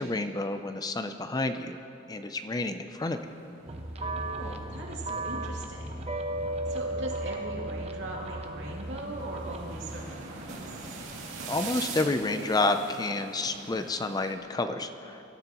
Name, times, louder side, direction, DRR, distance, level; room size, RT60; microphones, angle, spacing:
voice 1, 0.0-1.8 2.1-3.2 11.5-15.2, left 2 dB, 20° left, 8 dB, 0.5 m, -29 dB
sound 1, 3.0-14.3, right 3 dB, 80° right, 2.5 m, -44 dB
sound 2, 3.7-10.0, right 1 dB, 35° right, 0.8 m, -35 dB
voice 2, 4.0-6.1 6.7-10.6, right 1 dB, 65° right, -2 dB, 2.7 m, -40 dB
25.0 x 13.0 x 3.0 m, 2.8 s
head